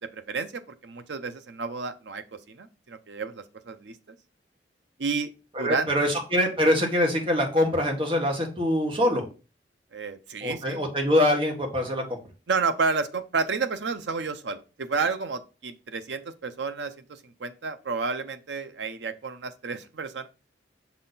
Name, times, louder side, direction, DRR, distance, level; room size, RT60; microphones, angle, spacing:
voice 1, 0.0-4.0 5.0-5.3 5.6-6.1 9.9-10.8 12.5-20.3, right 4 dB, 70° right, 10 dB, 0.7 m, -31 dB
voice 2, 5.6-9.2 10.4-12.2, left 1 dB, 30° right, 1 dB, 1.5 m, -24 dB
6.5 x 4.1 x 3.9 m, 0.33 s
head